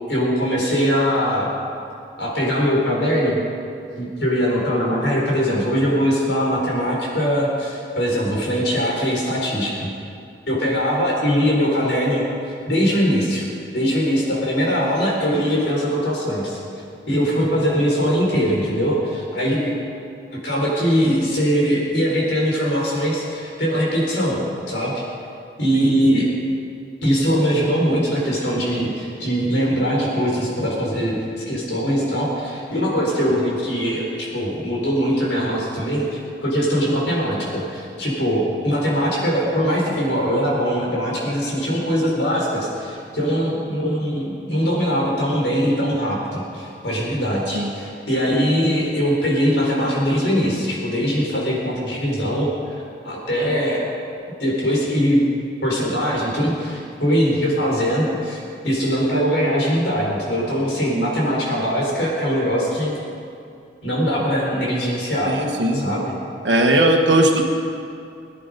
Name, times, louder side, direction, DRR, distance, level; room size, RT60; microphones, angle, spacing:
voice 1, 0.1-1.5 2.2-3.4 4.0-9.9 10.5-13.5 13.7-16.6 17.1-19.8 20.3-24.4 24.7-25.0 25.6-26.3 27.0-31.2 31.5-53.8 54.4-55.2 55.6-63.0 63.8-65.3 65.7-66.2, equal, 85° left, -3 dB, 4.7 m, -21 dB
voice 2, 25.7-26.2 47.5-47.7 65.3-65.9 66.4-67.4, right 1 dB, 90° right, 1 dB, 1.3 m, -18 dB
22.0 x 10.5 x 5.3 m, 2.4 s
head